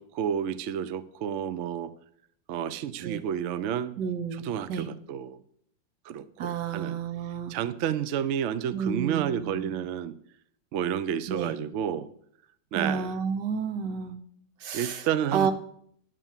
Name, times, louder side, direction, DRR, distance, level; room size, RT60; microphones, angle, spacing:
voice 1, 0.0-1.9 2.5-4.0 4.3-5.4 6.0-7.0 7.5-10.1 10.7-12.1 12.7-13.1 14.7-15.5, right 9 dB, 85° right, 15 dB, 0.6 m, -30 dB
voice 2, 4.0-4.9 6.4-7.5 8.7-9.8 11.3-11.5 12.7-14.2 14.6-15.0 15.3-15.5, right 6 dB, 70° right, 8 dB, 1.6 m, -31 dB
11.0 x 4.7 x 7.3 m, 0.67 s
omnidirectional pair, 2.0 m